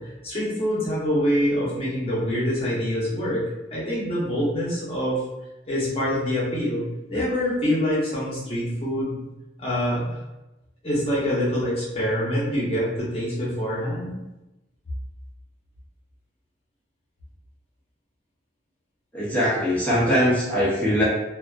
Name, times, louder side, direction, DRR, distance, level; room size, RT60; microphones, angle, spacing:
voice 1, 0.0-3.5 3.7-5.2 5.6-9.3 9.6-10.1 10.8-14.2, equal, 30° left, -8 dB, 0.9 m, -25 dB
voice 2, 19.1-21.0, equal, 10° left, -8 dB, 0.5 m, -21 dB
2.4 x 2.3 x 2.3 m, 0.98 s
head